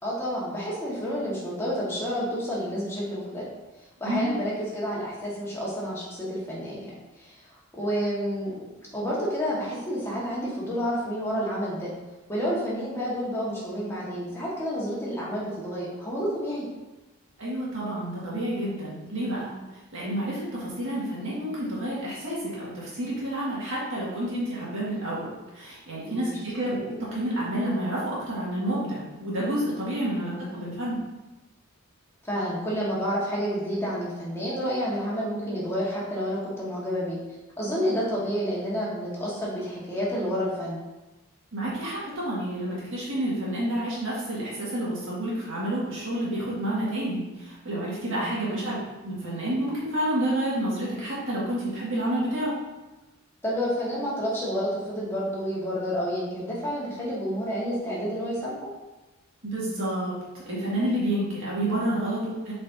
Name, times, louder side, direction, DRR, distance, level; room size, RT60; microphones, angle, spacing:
voice 1, 0.0-3.4 4.0-6.9 7.2-7.4 7.7-8.6 8.9-11.9 12.3-16.7 26.0-26.3 30.0-30.6 32.2-37.2 37.6-40.8 48.0-48.3 53.4-58.7, equal, 10° left, -7 dB, 1.6 m, -29 dB
voice 2, 4.0-4.3 17.4-19.5 19.9-25.3 25.5-31.0 41.5-52.5 59.4-60.1 60.5-62.5, right 1 dB, 60° right, -7 dB, 2.0 m, -29 dB
7.9 x 4.3 x 2.8 m, 1.1 s
head